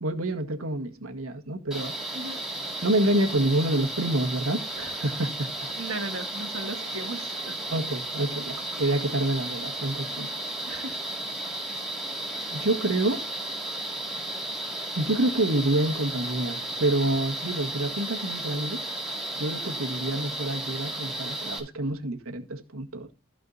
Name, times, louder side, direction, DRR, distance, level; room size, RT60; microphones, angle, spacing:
voice 1, 0.0-1.9 2.8-5.5 7.7-10.3 12.5-13.2 14.9-18.8 19.4-23.1, right 1 dB, 90° right, 1.8 m, -27 dB
sound 1, 1.7-21.6, right 1 dB, ahead, 2.5 m, -34 dB
voice 2, 5.7-7.5 10.7-11.0, right 2 dB, 75° right, 1.9 m, -36 dB
15.0 x 5.1 x 4.0 m
head